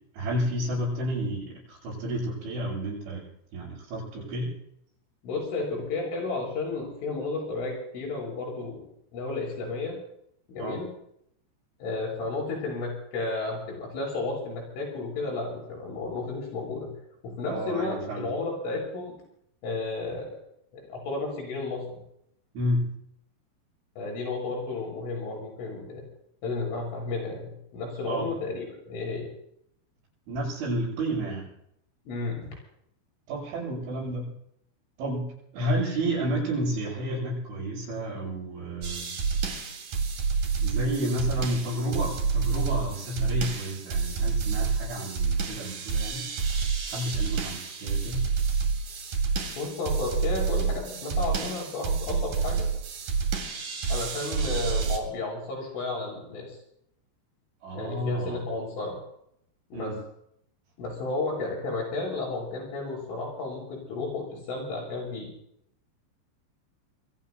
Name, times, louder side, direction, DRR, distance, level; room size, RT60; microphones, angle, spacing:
voice 1, 0.1-3.3 3.5-4.5 10.6-10.8 17.5-18.3 22.6-22.9 28.1-28.3 30.3-31.5 33.3-34.3 35.0-35.3 35.5-39.1 40.6-46.3 46.9-48.2 57.6-58.4 59.7-60.0, right 1 dB, 75° right, -8 dB, 9.3 m, -31 dB
voice 2, 5.2-8.8 9.1-10.0 10.5-10.9 11.8-16.9 17.2-19.1 19.6-20.3 20.9-22.0 24.0-26.0 26.4-29.3 32.1-32.4 49.6-52.7 53.9-56.6 57.7-59.0 59.7-59.9 60.8-65.3, left 3 dB, 85° left, -1 dB, 9.9 m, -32 dB
sound 1, 38.8-55.0, right 5 dB, 50° right, 3.5 m, -28 dB
28.0 x 23.0 x 2.2 m, 0.73 s
omnidirectional pair, 5.5 m